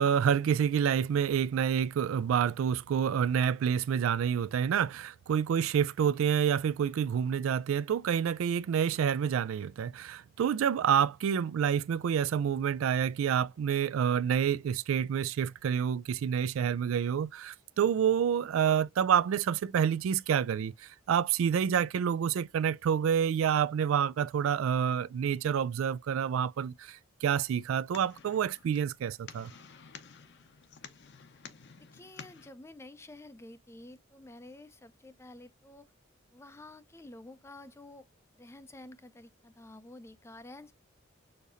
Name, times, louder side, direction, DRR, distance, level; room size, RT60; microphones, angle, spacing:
voice 1, 0.0-29.5, right 8 dB, 75° right, 0.3 m, -28 dB
sound 1, 27.5-32.5, left 6 dB, 55° left, 0.7 m, -51 dB
voice 2, 31.8-35.9 36.3-38.1 38.4-40.7, left 2 dB, 15° left, 0.4 m, -50 dB
6.5 x 2.7 x 2.5 m
head